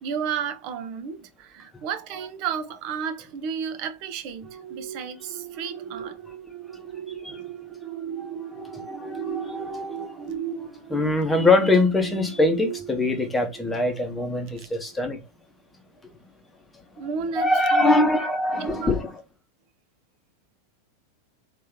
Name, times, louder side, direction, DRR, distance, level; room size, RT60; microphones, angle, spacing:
voice 1, 0.0-6.2 7.2-7.4 14.6-14.7 17.0-18.1 18.5-19.0, right 6 dB, 45° right, 0.7 m, -32 dB
sound 1, 4.4-14.3 14.7-15.0, right 9 dB, 20° right, 1.3 m, -37 dB
voice 2, 8.2-10.3 10.9-15.2 17.3-19.1, left 2 dB, 10° left, 0.9 m, -23 dB
3.2 x 3.2 x 3.5 m
figure-of-eight pair, 90°, 0 cm